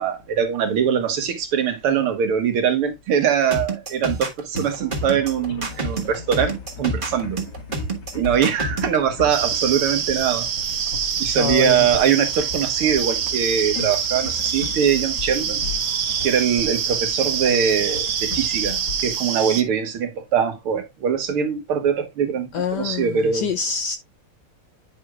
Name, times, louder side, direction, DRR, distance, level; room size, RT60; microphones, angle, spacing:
voice 1, 0.0-7.4 8.1-10.5 11.2-15.6 16.2-23.5, right 8 dB, 85° right, 2.2 m, -22 dB
sound 1, 3.5-9.0, right 3 dB, 25° right, 1.4 m, -28 dB
sound 2, 4.5-20.2, left 5 dB, 55° left, 2.2 m, -36 dB
sound 3, 9.3-19.6, right 7 dB, 55° right, 1.0 m, -25 dB
voice 2, 11.4-11.9 22.5-24.0, left 7 dB, 75° left, 1.0 m, -26 dB
10.5 x 4.7 x 2.4 m
omnidirectional pair, 2.4 m